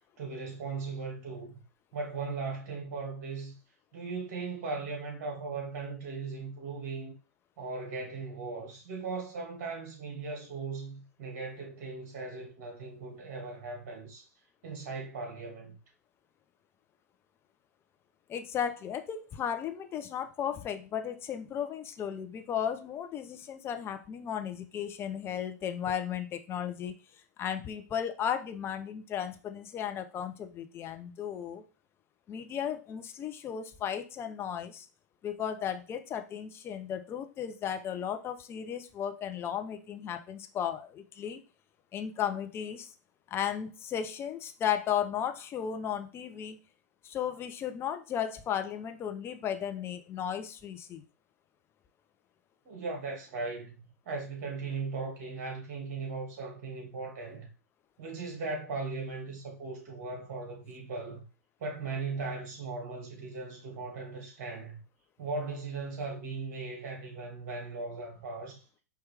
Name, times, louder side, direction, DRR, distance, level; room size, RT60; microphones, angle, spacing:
voice 1, 0.2-1.6 1.9-3.5 3.9-7.1 7.6-14.3 14.6-15.8 52.6-57.5 58.0-61.2 61.6-64.8 65.2-68.6, right 4 dB, 50° right, 2.2 m, -38 dB
voice 2, 18.3-26.9 27.4-31.6 32.3-34.9 35.2-41.4 41.9-42.9 43.3-46.6 47.0-51.0, left 9 dB, 25° left, 0.6 m, -35 dB
4.7 x 3.0 x 3.4 m
hypercardioid pair, 105°, 9 cm